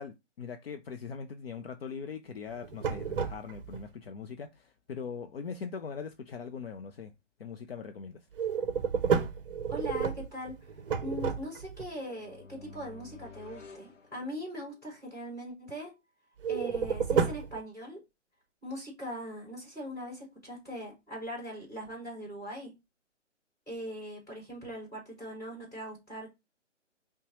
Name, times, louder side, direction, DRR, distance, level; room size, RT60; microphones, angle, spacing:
voice 1, 0.0-7.1 7.4-8.2, left 6 dB, 55° left, 0.5 m, -41 dB
sound 1, 2.5-3.8 8.3-11.9 16.4-17.6, right 6 dB, 45° right, 0.6 m, -31 dB
voice 2, 9.7-10.7 11.0-16.0 16.5-18.0 18.6-22.7 23.7-26.3, equal, 10° left, 2.2 m, -40 dB
sound 2, 11.8-14.9, left 4 dB, 75° left, 0.9 m, -52 dB
5.5 x 2.2 x 3.0 m
figure-of-eight pair, 140°, 37 cm